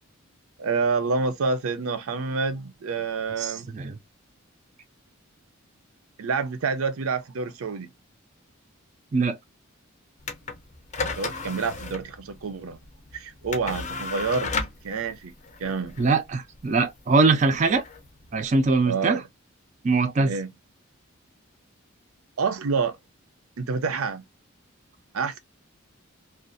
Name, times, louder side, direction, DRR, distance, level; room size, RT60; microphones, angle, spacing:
voice 1, 0.6-3.7 6.2-7.9 11.0-12.8 13.1-14.5 14.8-15.3 15.6-16.0 18.9-19.3 20.2-20.5 22.4-23.0 23.6-24.2 25.1-25.4, right 4 dB, 85° right, 0.5 m, -28 dB
voice 2, 3.4-4.0 9.1-9.4 16.0-17.8 18.3-19.2 19.8-20.3, right 3 dB, 35° right, 0.3 m, -22 dB
sound 1, 10.2-18.7, left 4 dB, 35° left, 0.5 m, -35 dB
2.5 x 2.3 x 2.5 m
head